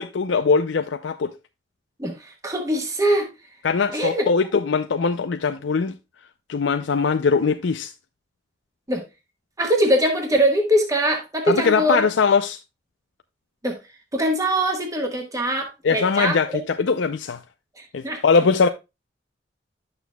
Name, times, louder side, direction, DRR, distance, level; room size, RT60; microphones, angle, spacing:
voice 1, 0.0-1.3 3.6-5.9 6.5-7.9 11.5-12.6 15.8-17.4 17.9-18.7, left 5 dB, 85° left, 0.5 m, -21 dB
voice 2, 2.0-3.3 3.9-4.3 8.9-9.0 9.6-12.1 13.6-13.8 14.1-16.4 18.0-18.2, right 1 dB, 20° right, 1.3 m, -22 dB
11.0 x 6.7 x 2.2 m
head